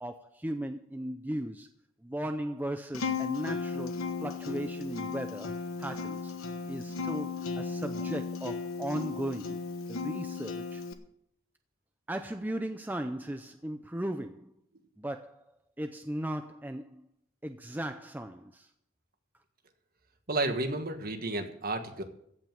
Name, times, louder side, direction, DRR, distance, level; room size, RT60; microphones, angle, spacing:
voice 1, 0.0-1.7 2.0-6.3 6.7-9.6 9.9-10.8 12.1-14.5 15.0-15.5 15.8-17.1 17.4-18.7, right 1 dB, 10° right, 0.5 m, -37 dB
Acoustic guitar, 2.9-10.9, left 5 dB, 80° left, 1.2 m, -35 dB
voice 2, 20.3-22.0, right 2 dB, 45° right, 1.5 m, -32 dB
15.5 x 5.8 x 9.0 m
head